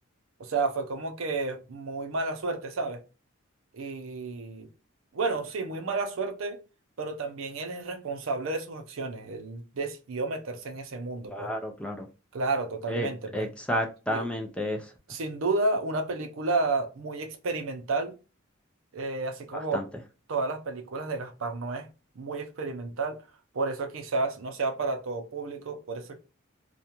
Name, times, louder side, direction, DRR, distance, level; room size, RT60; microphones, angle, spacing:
voice 1, 0.4-3.0 3.7-4.7 5.1-6.6 7.0-11.5 12.3-13.5 14.1-14.3 15.1-18.1 18.9-19.8 20.3-21.9 22.2-23.2 23.5-26.2, right 3 dB, 70° right, 0.5 m, -31 dB
voice 2, 11.3-12.1 12.9-13.1 13.3-14.8 19.5-19.8, equal, 5° left, 0.3 m, -31 dB
2.4 x 2.2 x 2.8 m
head